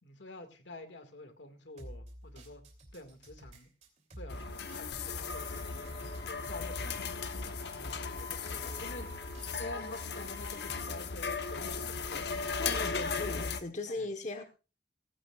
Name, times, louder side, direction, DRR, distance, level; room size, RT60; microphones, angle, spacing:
voice 1, 0.0-2.6 2.9-3.7 4.2-4.4 4.7-5.7 6.3-7.2 7.7-9.1 9.6-12.4 13.9-14.1, left 1 dB, 85° left, 8 dB, 2.0 m, -48 dB
sound 1, 1.8-11.0, equal, 40° right, 3.0 m, -50 dB
sound 2, 4.3-13.6, left 5 dB, 65° left, 1.0 m, -37 dB
Wind instrument woodwind instrument, 5.2-10.8, left 2 dB, 25° left, 2.8 m, -52 dB
voice 2, 12.6-14.4, left 2 dB, 45° left, 7 dB, 1.2 m, -38 dB
18.0 x 15.5 x 2.4 m, 0.33 s
head